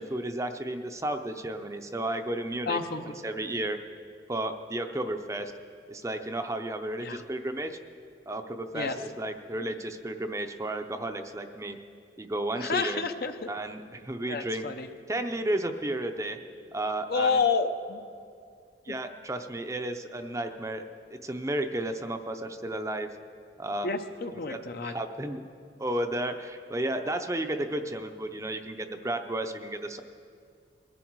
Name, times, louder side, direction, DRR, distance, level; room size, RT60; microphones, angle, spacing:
voice 1, 0.0-2.8 3.2-3.8 4.3-5.5 5.9-7.8 8.3-11.8 12.2-13.0 13.5-14.7 15.1-16.4 16.7-17.4 18.9-20.9 21.1-23.1 23.6-23.9 24.5-25.4 25.8-30.0, right 1 dB, 15° right, 6 dB, 0.6 m, -33 dB
voice 2, 2.7-3.2 7.0-7.2 8.7-9.0 12.6-13.5 14.3-14.9 17.1-18.0 23.8-24.9, left 4 dB, 55° left, 8 dB, 0.7 m, -29 dB
21.0 x 11.5 x 4.6 m, 2.4 s
head